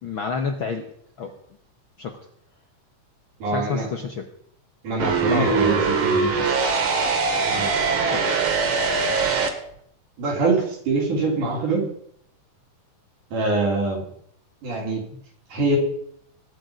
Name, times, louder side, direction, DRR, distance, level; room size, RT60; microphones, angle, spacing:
voice 1, 0.0-0.8 1.2-1.4 2.0-2.2 3.4-4.3 5.3-5.6 7.5-7.8 8.1-8.3 15.1-15.2, left 5 dB, 65° left, 5 dB, 1.3 m, -29 dB
voice 2, 3.4-3.9 4.8-6.5 7.5-7.8 10.2-11.8 13.3-14.0 14.6-15.0 15.5-15.8, right 3 dB, 75° right, -1 dB, 5.1 m, -24 dB
sound 1, 5.0-9.5, right 4 dB, 45° right, 2.3 m, -22 dB
20.0 x 9.1 x 5.1 m, 0.69 s
omnidirectional pair, 3.7 m